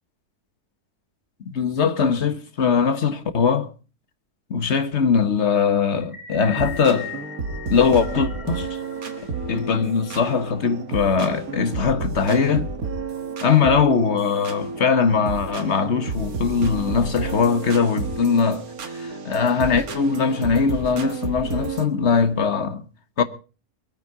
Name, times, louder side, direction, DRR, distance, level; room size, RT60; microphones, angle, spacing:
voice 1, 1.4-3.7 4.5-7.1 7.7-8.7 9.5-12.7 13.4-18.6 18.9-22.8 23.2-23.3, left 6 dB, 50° left, 1.4 m, -21 dB
sound 1, 6.0-10.3, left 9 dB, 25° left, 2.8 m, -40 dB
sound 2, 6.6-21.8, right 4 dB, 70° right, 2.0 m, -31 dB
22.5 x 9.3 x 4.8 m
omnidirectional pair, 1.6 m